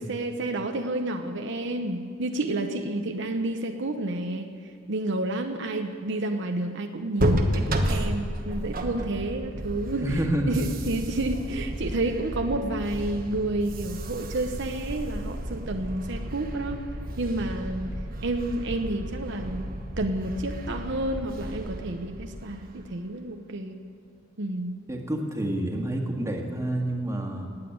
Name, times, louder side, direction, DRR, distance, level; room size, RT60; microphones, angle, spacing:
voice 1, 0.1-4.6 4.9-16.8 17.2-17.9 18.2-19.7 20.0-23.8 24.4-24.7, right 2 dB, 65° right, 5 dB, 1.0 m, -30 dB
sound 1, 7.2-22.9, equal, 50° right, 1.3 m, -32 dB
voice 2, 10.0-10.6 24.9-27.5, right 1 dB, 15° right, 0 dB, 1.9 m, -28 dB
18.5 x 8.3 x 9.4 m, 2.2 s
head